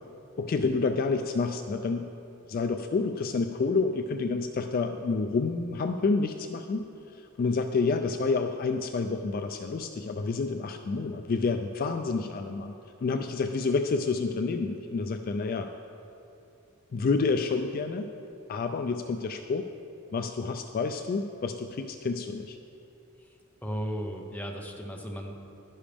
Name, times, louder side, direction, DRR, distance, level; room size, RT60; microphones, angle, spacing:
voice 1, 0.4-2.1 2.5-6.8 7.1-12.7 13.0-15.7 16.9-18.1 18.5-19.7 20.1-22.6, left 4 dB, 45° left, 6 dB, 0.3 m, -29 dB
voice 2, 23.6-25.4, equal, 5° left, 1 dB, 0.8 m, -35 dB
11.0 x 10.0 x 3.5 m, 2.7 s
head